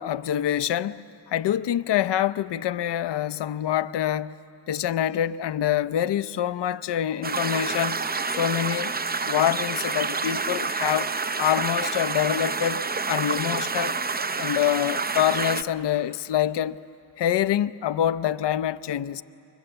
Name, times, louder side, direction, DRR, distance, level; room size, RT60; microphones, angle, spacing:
voice 1, 0.0-4.3 4.7-8.0 8.3-9.0 9.3-14.0 14.4-16.8 17.2-19.2, left 11 dB, 60° left, 0.7 m, -26 dB
sound 1, 7.2-15.6, right 4 dB, 20° right, 0.6 m, -28 dB
29.5 x 24.5 x 7.9 m
cardioid pair, 95°, 46 cm